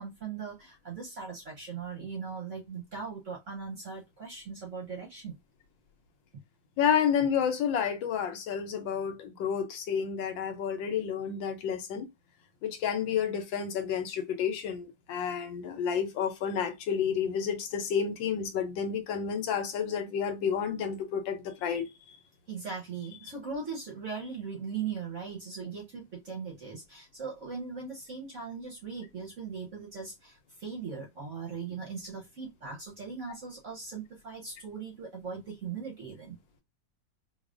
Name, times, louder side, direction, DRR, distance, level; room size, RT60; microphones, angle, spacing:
voice 1, 0.0-5.4 6.3-6.4 22.5-36.4, right 5 dB, 55° right, 0.9 m, -39 dB
voice 2, 6.8-12.1 12.6-21.9, left 7 dB, 75° left, 1.4 m, -30 dB
4.7 x 2.3 x 2.4 m
omnidirectional pair, 2.2 m